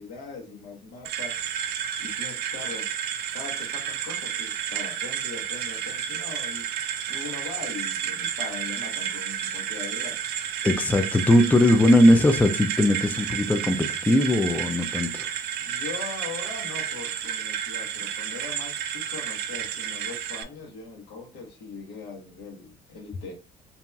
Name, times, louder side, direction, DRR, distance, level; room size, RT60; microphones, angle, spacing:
voice 1, 0.0-1.4 2.0-2.9 3.3-6.7 7.1-10.2 15.6-23.3, left 4 dB, 80° left, 1.2 m, -40 dB
sound 1, 1.0-20.4, right 9 dB, 75° right, 0.4 m, -31 dB
voice 2, 10.6-15.3, left 1 dB, 10° left, 0.3 m, -20 dB
2.9 x 2.7 x 2.2 m
cardioid pair, 110°, 17 cm